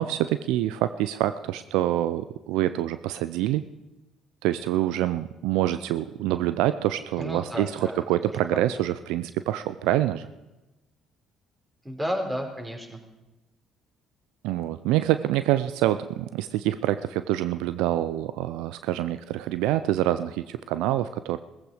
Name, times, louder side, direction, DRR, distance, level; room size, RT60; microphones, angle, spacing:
voice 1, 0.0-3.6 4.4-10.3 14.4-21.4, right 13 dB, 75° right, 13 dB, 0.5 m, -26 dB
voice 2, 7.2-8.7 11.8-13.0, equal, 15° right, 1 dB, 4.8 m, -32 dB
18.0 x 15.0 x 5.1 m, 1.0 s
hypercardioid pair, 55°, 0 cm